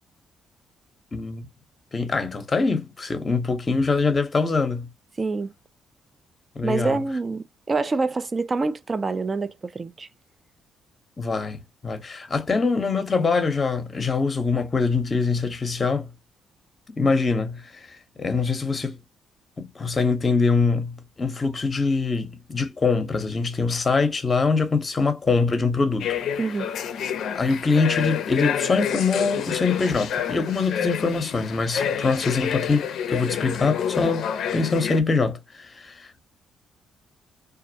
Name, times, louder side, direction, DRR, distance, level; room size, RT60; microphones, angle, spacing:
voice 1, 1.1-1.4 1.9-4.9 6.6-7.0 11.2-16.1 17.0-17.9 18.2-19.0 19.6-26.2 27.3-36.2, left 4 dB, 30° left, 0.7 m, -24 dB
voice 2, 5.2-5.5 6.6-10.1 26.4-26.7, right 3 dB, 30° right, 0.3 m, -26 dB
sound 1, 26.0-35.0, left 8 dB, 70° left, 0.4 m, -28 dB
2.4 x 2.0 x 2.6 m
cardioid pair, 90°, 0 cm